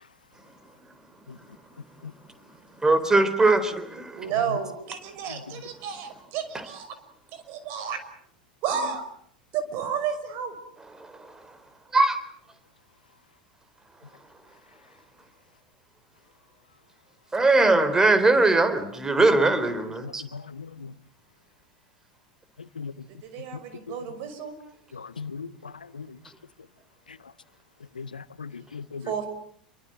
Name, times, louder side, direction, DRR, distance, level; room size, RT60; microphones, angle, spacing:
voice 1, 2.8-4.2 11.9-12.2 17.3-20.2, right 2 dB, 10° right, 3.8 m, -20 dB
voice 2, 4.1-6.9 7.3-8.0 8.6-9.0 9.5-10.5 23.2-24.5 29.1-29.3, right 7 dB, 45° right, 5.7 m, -31 dB
voice 3, 20.3-20.7 22.8-22.9 24.9-25.5 26.0-26.1 28.0-29.0, left 5 dB, 75° left, 1.1 m, -37 dB
29.0 x 23.5 x 7.8 m
figure-of-eight pair, 85°, 5 cm